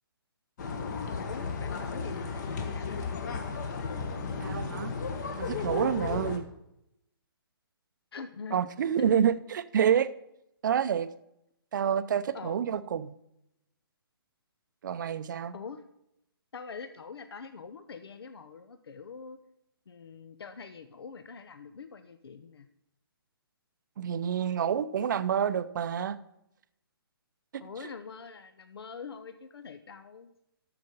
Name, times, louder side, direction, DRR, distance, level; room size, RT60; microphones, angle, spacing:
sound 1, 0.6-6.4, left 5 dB, 45° left, 1.2 m, -34 dB
voice 1, 1.2-3.2 8.1-8.6 12.3-12.9 15.5-15.8 16.5-19.4 19.9-22.7 27.6-30.3, left 5 dB, 80° left, 0.7 m, -44 dB
voice 2, 4.4-4.9 5.4-6.5 8.5-10.1 10.6-11.1 11.7-13.1 14.8-15.5 24.0-26.2, right 8 dB, 50° right, 0.5 m, -28 dB
7.9 x 6.6 x 5.4 m
hypercardioid pair, 145°, 13 cm